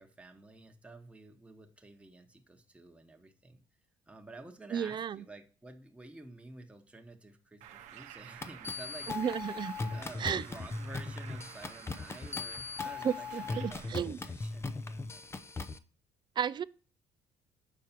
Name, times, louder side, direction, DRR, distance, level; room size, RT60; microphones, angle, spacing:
voice 1, 0.0-3.6 4.1-9.4 9.9-15.5, right 2 dB, 10° right, 1.1 m, -51 dB
voice 2, 4.7-5.2 9.1-9.7 10.2-10.4 13.0-14.2 16.4-16.6, right 8 dB, 40° right, 0.4 m, -33 dB
Bird, 7.6-13.9, right 10 dB, 75° right, 0.7 m, -51 dB
sound 1, 8.4-15.8, left 4 dB, 20° left, 0.5 m, -39 dB
7.0 x 4.7 x 4.4 m
supercardioid pair, 85°, 12 cm